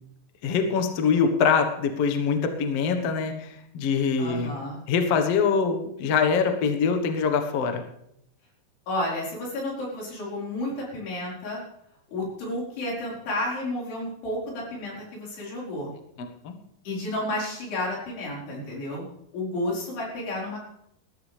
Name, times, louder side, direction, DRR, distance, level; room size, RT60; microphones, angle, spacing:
voice 1, 0.4-4.6 4.9-7.8 16.4-16.6, left 5 dB, 60° left, 6 dB, 1.7 m, -24 dB
voice 2, 4.2-4.8 8.9-11.6 12.1-15.9 16.8-19.1 19.3-20.6, left 1 dB, 90° left, -4 dB, 6.8 m, -31 dB
19.5 x 13.0 x 3.4 m, 0.76 s
omnidirectional pair, 4.5 m